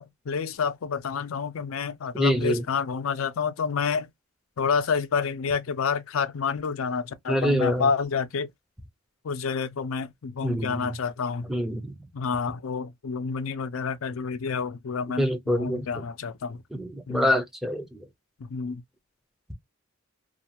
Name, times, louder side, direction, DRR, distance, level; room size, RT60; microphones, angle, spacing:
voice 1, 0.0-4.1 4.6-8.5 9.2-11.5 12.1-16.6 17.1-17.3 18.4-18.8, left 5 dB, 85° left, 0.5 m, -29 dB
voice 2, 2.1-2.6 7.3-7.9 10.4-10.9 11.5-11.9 15.2-15.9 16.7-18.0, equal, ahead, 0.5 m, -26 dB
2.5 x 2.3 x 2.8 m
head